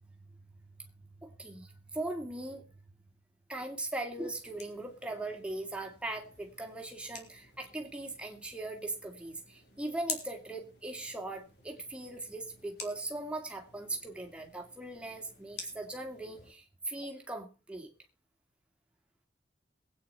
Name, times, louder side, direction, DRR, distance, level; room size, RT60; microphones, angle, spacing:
voice 1, 1.2-2.7 3.5-17.9, right 2 dB, 5° right, 2 dB, 2.4 m, -39 dB
sound 1, 4.1-16.5, left 5 dB, 65° left, 3.5 m, -49 dB
21.5 x 9.0 x 4.4 m, 0.35 s
head